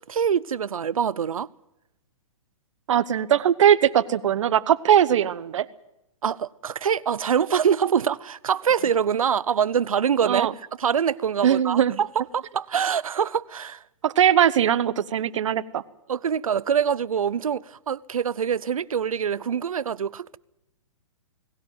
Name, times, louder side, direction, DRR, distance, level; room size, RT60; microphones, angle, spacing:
voice 1, 0.0-1.5 6.2-10.5 10.8-13.8 16.1-20.4, right 7 dB, 85° right, 0.7 m, -24 dB
voice 2, 2.9-5.7 10.2-10.5 11.4-12.0 14.0-15.8, right 9 dB, 65° right, 1.1 m, -20 dB
19.5 x 17.0 x 9.2 m
hypercardioid pair, 135°, 17 cm